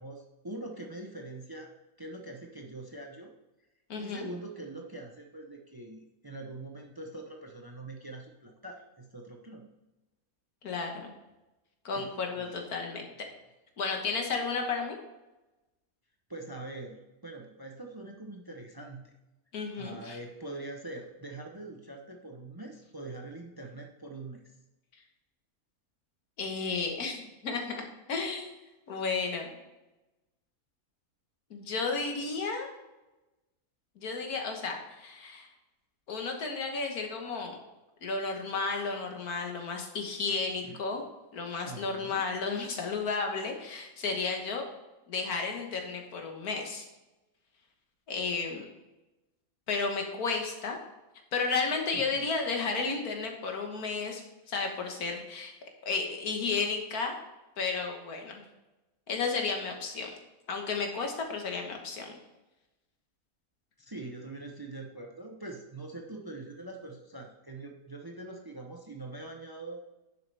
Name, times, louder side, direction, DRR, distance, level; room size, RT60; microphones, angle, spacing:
voice 1, 0.0-1.7 2.0-3.3 4.0-9.7 11.9-12.5 16.3-19.1 19.7-24.5 40.6-40.8 41.6-42.3 51.9-52.2 63.8-69.8, right 2 dB, 20° right, 2 dB, 0.6 m, -43 dB
voice 2, 3.9-4.3 10.6-11.1 11.9-13.3 13.8-15.0 19.5-20.2 26.4-28.5 28.9-29.5 31.5-32.7 34.0-35.5 36.1-37.6 38.0-41.0 41.3-44.6 45.1-46.9 48.1-48.7 49.7-50.8 51.3-54.2 54.5-55.5 55.8-57.2 57.6-58.4 59.1-60.1 60.5-62.1, left 4 dB, 90° left, 3 dB, 1.8 m, -33 dB
10.5 x 6.8 x 3.4 m, 1.0 s
omnidirectional pair, 1.5 m